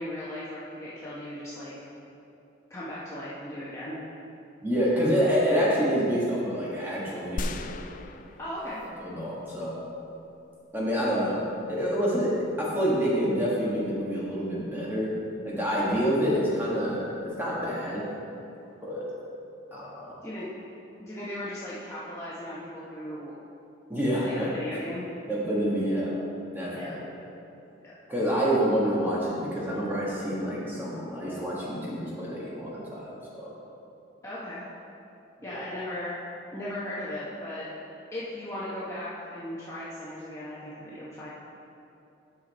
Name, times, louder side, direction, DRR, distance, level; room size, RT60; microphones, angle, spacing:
voice 1, 0.0-1.7 2.7-4.0 8.4-8.8 20.2-20.5 21.0-23.3 24.2-25.1 26.7-27.0 27.8-27.9 34.2-34.6 35.4-36.2 36.5-37.7 38.1-41.3, left 1 dB, 15° left, -9 dB, 0.9 m, -37 dB
voice 2, 4.6-7.8 9.0-9.8 10.7-12.3 12.6-15.1 15.4-18.0 18.8-19.0 19.7-20.1 23.9-24.5 25.3-26.1 26.5-27.0 28.1-33.5 35.4-35.6, equal, 10° right, -7 dB, 1.5 m, -27 dB
sound 1, 7.4-9.1 9.6-9.7, left 2 dB, 40° left, 0.3 m, -36 dB
9.6 x 5.7 x 4.2 m, 2.8 s
head